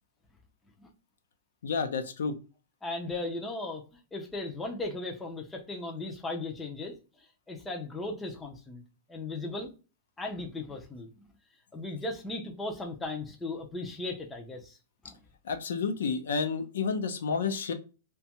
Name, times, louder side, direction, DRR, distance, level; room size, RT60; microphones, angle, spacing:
voice 1, 1.6-2.3 15.4-17.7, left 5 dB, 80° left, 8 dB, 0.5 m, -30 dB
voice 2, 2.8-8.8 9.1-9.7 10.2-11.1 11.7-14.8 15.0-15.2, left 2 dB, 5° left, 2 dB, 0.4 m, -37 dB
2.7 x 2.2 x 2.8 m, 0.32 s
supercardioid pair, 180°, 0 cm